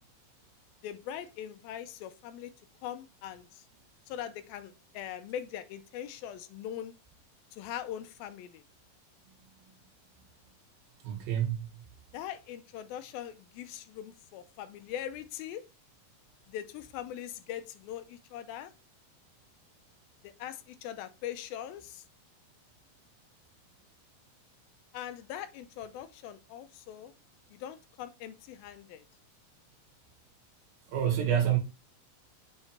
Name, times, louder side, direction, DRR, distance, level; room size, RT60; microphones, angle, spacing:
voice 1, 0.8-2.5 2.8-3.6 4.1-6.9 7.5-8.6 12.1-15.6 16.5-18.7 20.2-22.0 24.9-27.1 27.5-29.0, left 10 dB, 90° left, 2.6 m, -41 dB
voice 2, 11.0-11.7 30.9-31.6, right 10 dB, 75° right, 3.5 m, -27 dB
6.8 x 4.5 x 4.3 m
omnidirectional pair, 4.2 m